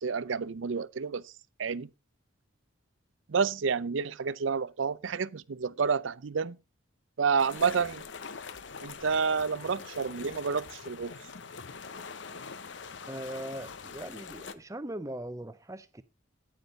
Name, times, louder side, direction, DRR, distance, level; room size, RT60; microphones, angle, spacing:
voice 1, 0.0-1.3 1.6-1.9 3.3-6.6 7.2-8.0 8.8-11.1, right 5 dB, 70° right, 0.5 m, -29 dB
sound 1, 7.4-14.5, left 5 dB, 60° left, 0.8 m, -44 dB
voice 2, 13.1-16.0, right 1 dB, 15° right, 0.7 m, -40 dB
9.6 x 9.5 x 3.9 m
head